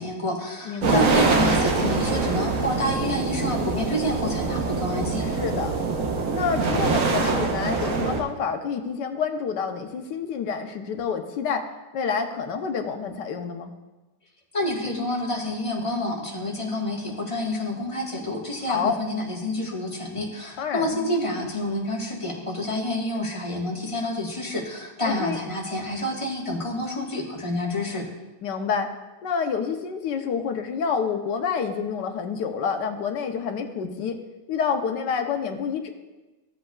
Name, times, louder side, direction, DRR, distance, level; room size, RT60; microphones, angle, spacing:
voice 1, 0.0-5.3 14.5-28.0, left 1 dB, 20° left, -3 dB, 1.4 m, -28 dB
voice 2, 0.6-1.1 5.2-5.8 6.3-11.7 11.9-13.7 18.7-18.9 20.6-21.0 25.1-25.4 28.4-28.9 29.2-34.2 34.5-35.9, left 6 dB, 80° left, 5 dB, 1.4 m, -28 dB
sound 1, 0.8-8.2, right 4 dB, 55° right, 1.2 m, -24 dB
15.5 x 7.6 x 2.4 m, 1.1 s
omnidirectional pair, 1.9 m